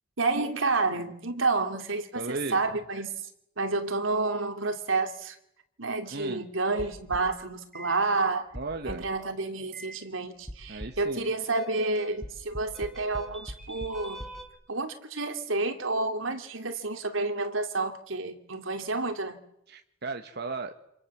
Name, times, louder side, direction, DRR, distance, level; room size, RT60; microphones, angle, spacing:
voice 1, 0.2-3.1 3.6-5.4 5.8-8.5 8.8-14.3 14.7-19.4, right 3 dB, 85° right, 7 dB, 2.9 m, -29 dB
voice 2, 2.1-2.6 6.1-6.5 8.5-9.1 10.7-11.2 19.7-20.7, right 3 dB, 55° right, 6 dB, 1.4 m, -36 dB
sound 1, 6.8-7.4 7.7-8.0 8.5-9.1 9.7-10.0 10.5-11.1 11.5-14.4, equal, ahead, 4.4 m, -41 dB
29.5 x 27.0 x 7.4 m, 0.79 s
head